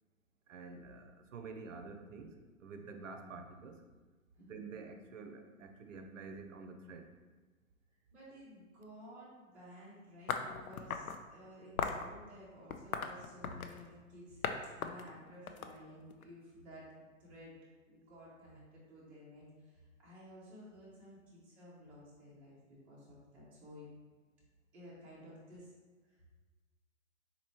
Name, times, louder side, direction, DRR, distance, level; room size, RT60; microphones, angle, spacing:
voice 1, 0.5-1.0 1.3-2.3 2.6-3.7 4.4-7.0, right 4 dB, 65° right, 6 dB, 0.6 m, -48 dB
voice 2, 8.1-14.5 14.7-16.9 17.2-17.5 17.9-23.9 24.7-25.7 26.0-26.2, equal, 5° right, -10 dB, 0.5 m, -54 dB
sound 1, 10.3-11.2 11.8-12.1 12.7-13.8 14.4-14.6 14.8-16.2, left 6 dB, 80° left, 0.5 m, -37 dB
4.1 x 2.9 x 2.9 m, 1.3 s
figure-of-eight pair, 125°, 41 cm